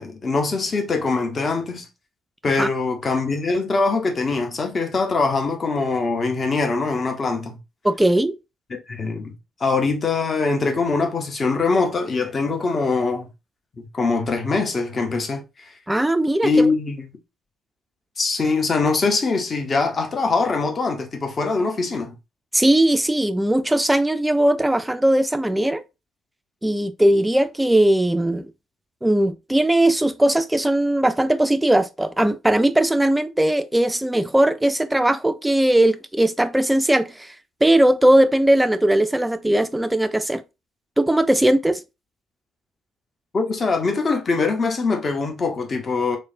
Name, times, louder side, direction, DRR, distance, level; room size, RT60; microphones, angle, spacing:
voice 1, 0.0-1.9 2.4-7.6 8.9-9.3 9.6-13.3 13.8-15.4 16.4-17.1 18.2-22.1 43.3-46.2, left 4 dB, 35° left, 0.6 m, -22 dB
voice 2, 7.8-8.3 15.9-16.7 22.5-25.8 26.6-28.5 29.0-37.3 37.6-40.4 41.0-41.8, right 1 dB, 10° right, 0.3 m, -19 dB
3.1 x 2.0 x 2.5 m
figure-of-eight pair, 45°, 0 cm